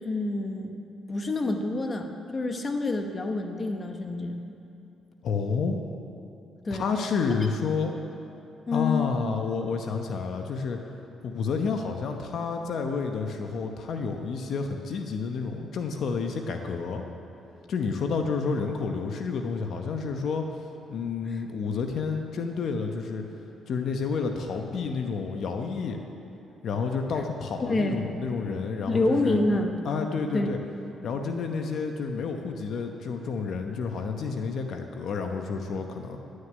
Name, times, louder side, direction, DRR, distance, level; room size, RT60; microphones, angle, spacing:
voice 1, 0.0-0.7 1.1-4.4 6.6-6.9 7.3-7.4 8.7-9.2 21.3-21.4 27.6-28.1 28.9-29.7 30.3-30.5, left 2 dB, 30° left, 4 dB, 1.1 m, -27 dB
voice 2, 5.2-5.8 6.8-7.9 8.7-10.8 11.2-17.0 17.7-20.4 20.9-23.2 23.7-26.0 26.6-29.4 29.8-30.6 31.0-36.2, left 5 dB, 65° left, 4 dB, 0.9 m, -30 dB
11.5 x 6.5 x 9.4 m, 2.8 s
cardioid pair, 90°, 0 cm